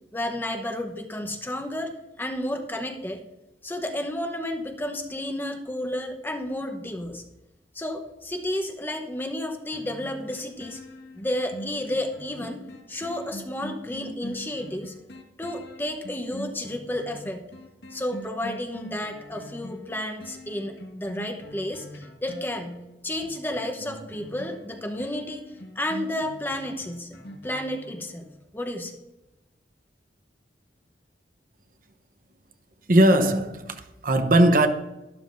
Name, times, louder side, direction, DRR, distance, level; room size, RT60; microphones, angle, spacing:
voice 1, 0.1-3.2 3.6-7.2 7.7-10.8 11.1-12.6 12.9-14.9 15.4-17.4 17.9-22.7 23.0-27.1 27.4-28.2 28.5-29.0, left 1 dB, 10° left, 0.9 m, -31 dB
sound 1, 9.7-28.4 28.9-29.0, equal, 80° left, 1.6 m, -43 dB
voice 2, 32.9-34.7, right 1 dB, 50° right, 0.9 m, -19 dB
12.5 x 12.0 x 2.6 m
head